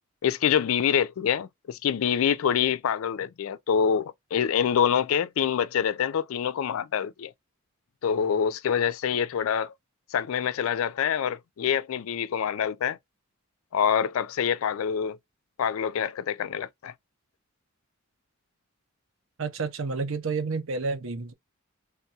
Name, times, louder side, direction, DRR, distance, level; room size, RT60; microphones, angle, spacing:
voice 1, 0.2-7.3 8.0-9.7 10.1-13.0 13.7-15.2 15.6-16.9, left 8 dB, 70° left, 0.3 m, -26 dB
voice 2, 19.4-21.3, right 4 dB, 65° right, 0.7 m, -30 dB
3.5 x 2.3 x 2.7 m
head